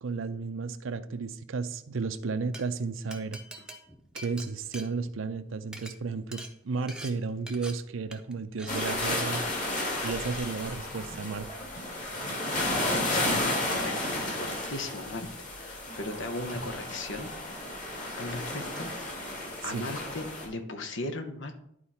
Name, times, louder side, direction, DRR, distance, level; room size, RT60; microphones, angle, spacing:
voice 1, 0.0-3.4 4.1-9.5 10.0-11.5 19.6-19.9, right 4 dB, 85° right, 12 dB, 0.6 m, -33 dB
Glass, 2.3-2.6 3.1-5.4 5.7-5.9 6.3-6.5 6.9-7.1 7.5-7.7 8.1-8.3 8.6-8.9, right 1 dB, 5° right, 0.7 m, -43 dB
sound 1, 8.7-20.5, left 1 dB, 40° left, 2.6 m, -32 dB
voice 2, 13.1-17.3 17.6-18.9 19.6-21.5, left 2 dB, 70° left, 6 dB, 1.1 m, -37 dB
11.5 x 4.7 x 4.3 m, 0.73 s
head